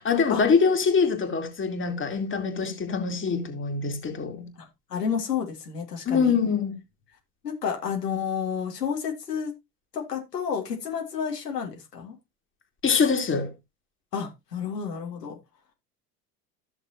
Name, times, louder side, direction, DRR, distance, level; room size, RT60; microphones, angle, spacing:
voice 1, 0.0-4.5 6.1-6.8 12.8-13.5, left 5 dB, 25° left, 2.4 m, -24 dB
voice 2, 4.6-6.4 7.4-9.5 9.9-12.1 14.1-15.4, left 7 dB, 85° left, 2.6 m, -30 dB
14.0 x 6.5 x 2.9 m
hypercardioid pair, 80°, 47 cm